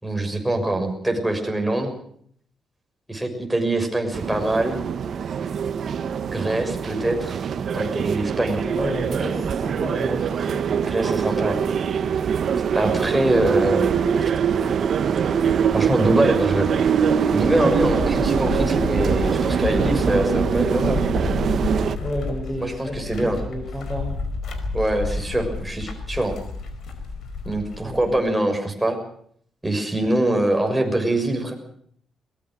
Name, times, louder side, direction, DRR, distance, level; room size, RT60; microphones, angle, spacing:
voice 1, 0.0-1.9 3.1-4.8 6.3-7.5 7.7-8.7 10.8-11.6 12.7-14.0 15.7-16.7 17.3-21.1 22.6-23.4 24.7-26.3 27.4-29.0 29.6-31.5, right 1 dB, 5° right, 3 dB, 6.4 m, -23 dB
sound 1, 4.1-22.0, right 7 dB, 55° right, 1.5 m, -23 dB
voice 2, 8.7-10.6 17.6-17.7 22.0-24.1 27.8-28.0, equal, 15° left, 0 dB, 7.0 m, -31 dB
sound 2, 17.4-28.2, left 3 dB, 70° left, 5.1 m, -30 dB
22.5 x 21.0 x 6.3 m, 0.63 s
cardioid pair, 110°, 0 cm